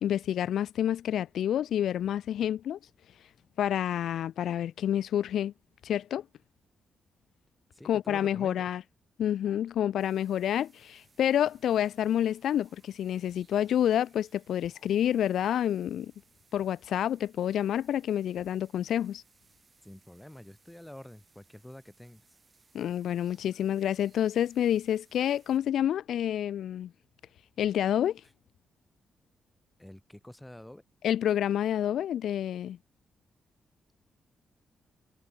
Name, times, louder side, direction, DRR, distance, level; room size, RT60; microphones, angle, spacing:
voice 1, 0.0-2.8 3.6-5.5 5.8-6.2 7.8-8.8 9.2-16.1 16.5-19.2 22.7-26.9 27.6-28.2 31.0-32.8, left 10 dB, 80° left, 0.4 m, -28 dB
voice 2, 7.7-8.7 19.8-22.4 29.8-30.8, left 1 dB, 5° left, 4.1 m, -48 dB
sound 1, 10.0-25.6, right 4 dB, 30° right, 7.4 m, -65 dB
cardioid pair, 110°, 0 cm